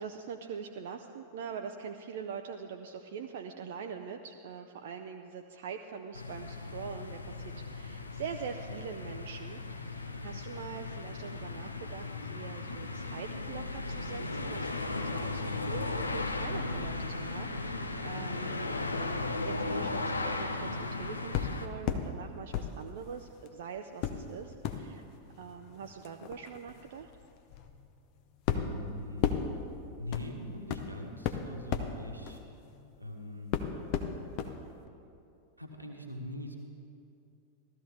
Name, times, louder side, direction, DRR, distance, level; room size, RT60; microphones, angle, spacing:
voice 1, 0.0-25.0 25.4-27.1, right 6 dB, 55° right, 4 dB, 0.5 m, -43 dB
sound 1, 6.1-21.7, left 3 dB, 80° left, 0.6 m, -36 dB
sound 2, 21.3-22.1 22.5-23.5 24.0-33.1 33.5-34.5 34.9-35.0, left 8 dB, 45° left, 0.8 m, -35 dB
voice 2, 28.5-29.4 30.0-32.4 33.0-33.6 35.6-36.6, left 2 dB, 85° right, 2 dB, 1.3 m, -42 dB
15.5 x 13.5 x 3.4 m, 2.7 s
figure-of-eight pair, 90°, 0 cm